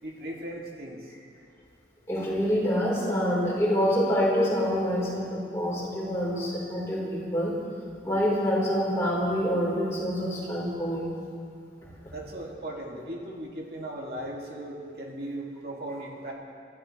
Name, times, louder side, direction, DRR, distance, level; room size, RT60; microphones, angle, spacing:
voice 1, 0.0-1.1 12.1-16.3, right 1 dB, 60° right, -2 dB, 2.8 m, -37 dB
voice 2, 2.1-7.6 8.0-11.1, equal, 15° left, -7 dB, 4.7 m, -26 dB
26.0 x 14.0 x 3.5 m, 2.3 s
head